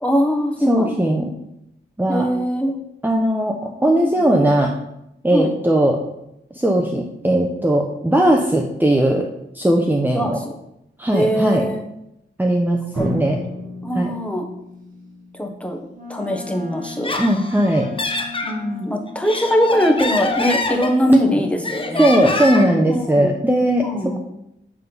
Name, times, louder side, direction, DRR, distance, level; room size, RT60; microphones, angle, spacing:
voice 1, 0.0-1.1 2.1-2.8 4.0-4.3 5.3-5.5 10.1-10.5 11.1-11.8 12.9-13.1 13.8-14.5 15.3-15.8 16.1-17.1 18.4-22.1 22.9-23.4 23.8-24.2, equal, 5° left, 2 dB, 1.3 m, -21 dB
voice 2, 0.7-1.3 2.0-2.3 3.0-4.7 5.2-6.0 6.5-9.3 9.5-10.4 11.0-11.7 12.4-13.4 13.9-14.1 17.2-17.9 21.1-21.4 22.0-23.8, right 1 dB, 10° right, 1 dB, 0.8 m, -18 dB
Drum, 13.0-16.7, equal, 65° right, 2.4 m, -33 dB
Wind instrument woodwind instrument, 15.9-22.7, left 5 dB, 45° right, 2.0 m, -39 dB
Laughter, 16.8-18.5 19.1-21.3 21.6-22.8, left 2 dB, 25° left, 1.0 m, -25 dB
8.3 x 3.7 x 5.4 m, 0.81 s
wide cardioid pair, 75°, 20 cm